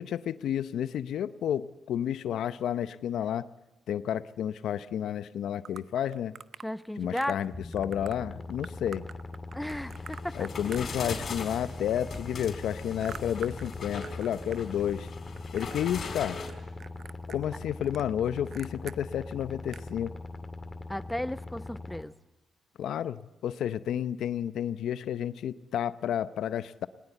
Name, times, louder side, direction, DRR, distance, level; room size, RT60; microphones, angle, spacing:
voice 1, 0.0-3.5 3.9-6.3 7.0-9.0 10.3-15.1 15.5-16.4 17.3-20.1 22.8-26.9, left 10 dB, 75° left, 14 dB, 0.7 m, -31 dB
sound 1, 5.7-6.7 7.2-7.5 7.7-8.2 8.6-11.4 11.7-14.6 14.9-15.8 16.0-16.5 16.8-19.0 19.4-19.5 19.7-19.9, right 7 dB, 60° right, 0.8 m, -46 dB
voice 2, 6.6-7.4 9.5-10.5 20.9-22.1, left 1 dB, 5° left, 14 dB, 0.8 m, -34 dB
sound 2, 7.5-22.0, left 2 dB, 25° left, 1.8 m, -41 dB
sound 3, 9.7-16.5, left 5 dB, 55° left, 4.5 m, -40 dB
20.5 x 20.5 x 8.1 m, 1.1 s
supercardioid pair, 65°, 0 cm